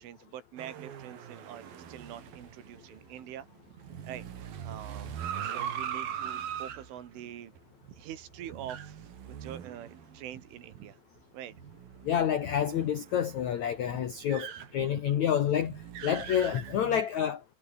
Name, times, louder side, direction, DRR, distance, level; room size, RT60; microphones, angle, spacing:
voice 1, 0.0-3.5 4.0-5.1 5.4-7.5 7.9-11.0 11.3-11.6 14.8-14.9 16.2-16.3, right 11 dB, 80° right, 5.0 m, -45 dB
sound 1, 0.6-10.5 10.9-11.0 11.5-17.0, right 9 dB, 55° right, 3.8 m, -41 dB
voice 2, 12.0-17.4, left 9 dB, 75° left, 1.7 m, -28 dB
omnidirectional pair, 5.5 m